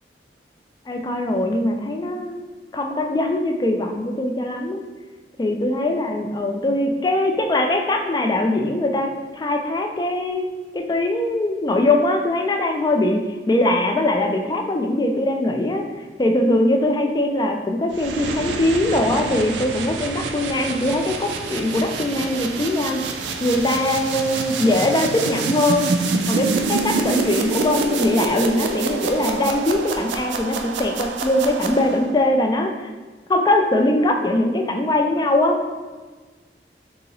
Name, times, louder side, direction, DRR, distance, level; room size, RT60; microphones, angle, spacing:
voice 1, 0.9-2.4 2.7-4.9 5.4-9.1 9.3-10.5 10.7-13.2 13.5-15.8 16.2-23.0 23.4-25.9 26.3-32.9 33.3-35.6, left 1 dB, 25° left, 3 dB, 0.3 m, -21 dB
sound 1, 17.9-32.2, right 4 dB, 85° right, 0.3 m, -27 dB
2.9 x 2.9 x 3.8 m, 1.4 s
head